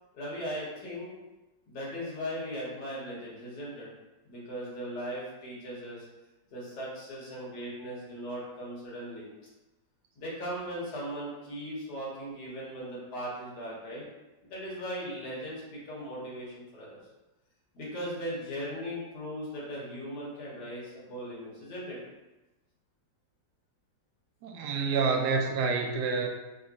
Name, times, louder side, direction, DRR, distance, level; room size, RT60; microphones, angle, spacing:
voice 1, 0.1-1.1 1.7-3.9 4.2-6.0 6.5-9.3 10.2-14.0 14.4-17.0 17.7-22.0, equal, 70° left, -6 dB, 2.0 m, -38 dB
voice 2, 24.4-26.3, right 4 dB, 75° right, 3 dB, 1.1 m, -28 dB
4.0 x 3.7 x 2.6 m, 1.1 s
omnidirectional pair, 1.9 m